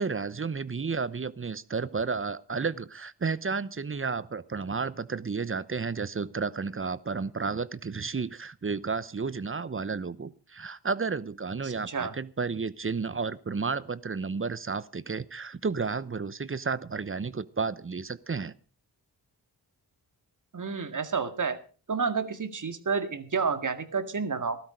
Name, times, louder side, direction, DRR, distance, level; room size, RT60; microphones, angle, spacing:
voice 1, 0.0-18.5, right 4 dB, 30° right, 0.9 m, -32 dB
voice 2, 11.6-12.1 20.5-21.6 21.9-24.6, right 5 dB, 45° right, 2.0 m, -30 dB
15.0 x 12.5 x 5.0 m
cardioid pair, 60°, 42 cm